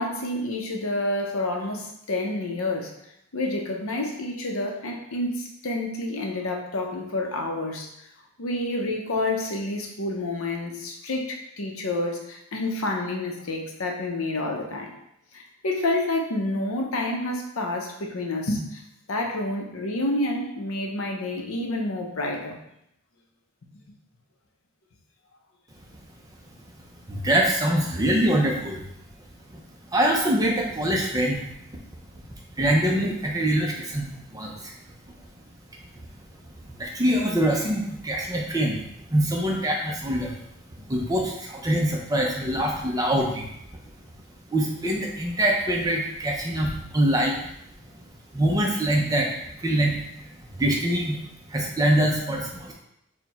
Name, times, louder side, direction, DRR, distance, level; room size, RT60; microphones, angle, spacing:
voice 1, 0.0-2.9 3.3-7.9 8.4-14.9 15.3-18.8 19.1-22.6, left 2 dB, 75° left, 2 dB, 0.6 m, -29 dB
voice 2, 27.1-28.8 29.5-29.6 29.9-31.4 32.6-34.7 36.6-38.8 39.1-40.3 40.9-43.5 44.5-47.4 48.3-49.3 49.6-50.0 50.6-51.2 51.5-52.7, right 1 dB, 15° right, 0 dB, 0.5 m, -24 dB
4.5 x 2.2 x 4.0 m, 0.78 s
head